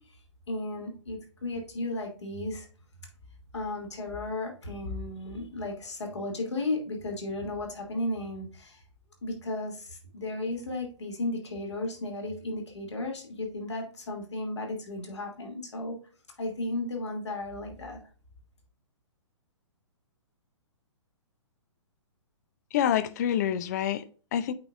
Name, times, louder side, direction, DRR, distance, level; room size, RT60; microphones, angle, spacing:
voice 1, 0.5-2.7 3.5-8.8 9.2-16.0 16.4-18.0, left 2 dB, 65° left, 2.6 m, -34 dB
voice 2, 22.7-24.5, left 10 dB, 35° left, 0.6 m, -27 dB
8.3 x 4.7 x 2.5 m
figure-of-eight pair, 120°, 16 cm